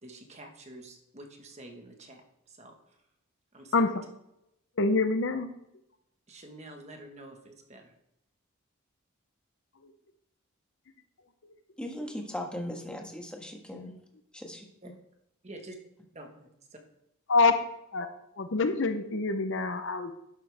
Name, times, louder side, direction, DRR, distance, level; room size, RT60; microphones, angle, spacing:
voice 1, 0.0-3.0 3.5-3.9 6.3-7.9 14.8-14.9 15.4-15.8 16.1-16.8, right 1 dB, 30° right, 1.4 m, -48 dB
voice 2, 4.8-5.5 17.3-17.5 17.9-18.1 18.4-20.1, left 3 dB, 55° left, 0.7 m, -25 dB
voice 3, 11.8-13.9 14.3-14.9, left 1 dB, 5° left, 1.4 m, -38 dB
11.5 x 8.6 x 3.4 m
head